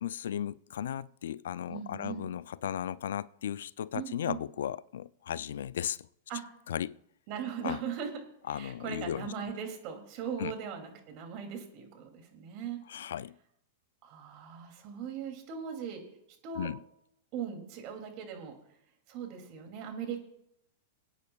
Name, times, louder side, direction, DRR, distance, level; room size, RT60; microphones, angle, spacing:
voice 1, 0.0-6.1 6.7-7.0 7.6-7.8 8.5-9.3 10.4-10.5 12.9-13.4 16.6-16.8, left 10 dB, 80° left, 0.3 m, -36 dB
voice 2, 1.7-2.3 3.9-4.4 6.3-6.4 7.3-8.1 8.5-12.8 14.0-16.0 16.4-16.7 17.3-18.5 19.1-20.2, right 7 dB, 50° right, 2.7 m, -39 dB
25.0 x 9.4 x 2.4 m
hypercardioid pair, 125°, 0 cm